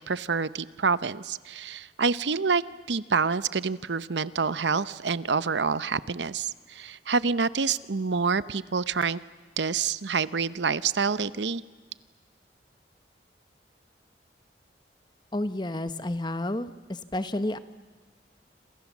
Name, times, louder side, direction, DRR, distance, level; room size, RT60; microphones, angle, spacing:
voice 1, 0.1-9.2 9.6-11.6, right 5 dB, 80° right, 16 dB, 0.8 m, -27 dB
voice 2, 15.3-17.6, left 1 dB, 25° left, 12 dB, 1.0 m, -30 dB
27.5 x 27.0 x 7.3 m, 1.4 s
head